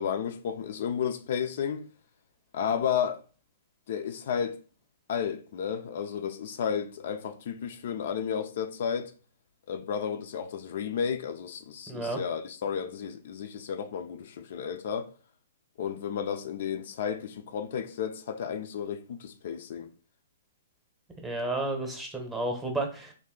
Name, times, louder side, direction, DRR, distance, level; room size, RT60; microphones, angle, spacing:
voice 1, 0.0-1.8 2.5-3.2 3.9-4.6 5.1-9.1 9.7-15.1 15.8-19.9, left 7 dB, 55° left, 0.4 m, -32 dB
voice 2, 11.9-12.2 21.2-23.1, right 2 dB, 10° right, 0.8 m, -32 dB
3.3 x 2.6 x 3.7 m
hypercardioid pair, 150°, 0 cm